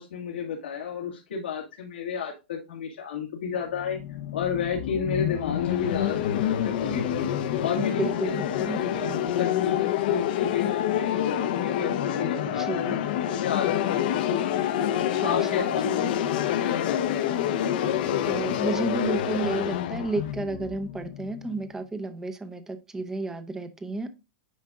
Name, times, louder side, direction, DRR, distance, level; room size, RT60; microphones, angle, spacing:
voice 1, 0.0-4.0 4.3-7.1 7.6-15.8 16.5-18.2, left 6 dB, 90° left, 1.8 m, -32 dB
sound 1, 3.7-21.6, left 11 dB, 60° left, 0.8 m, -27 dB
voice 2, 7.8-8.8 12.4-13.0 15.1-16.0 18.3-24.1, right 3 dB, 10° right, 0.7 m, -32 dB
9.4 x 5.0 x 2.4 m
supercardioid pair, 150°, 6 cm